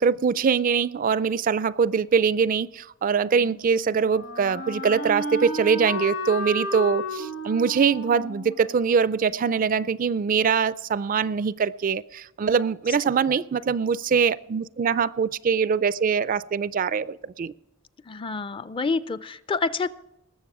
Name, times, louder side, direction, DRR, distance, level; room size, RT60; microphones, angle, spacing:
voice 1, 0.0-17.5, right 6 dB, 45° right, 0.4 m, -23 dB
Wind instrument woodwind instrument, 3.2-10.0, left 1 dB, 80° left, 5.9 m, -34 dB
voice 2, 18.1-19.9, left 4 dB, 25° left, 0.4 m, -28 dB
19.5 x 7.2 x 6.0 m
head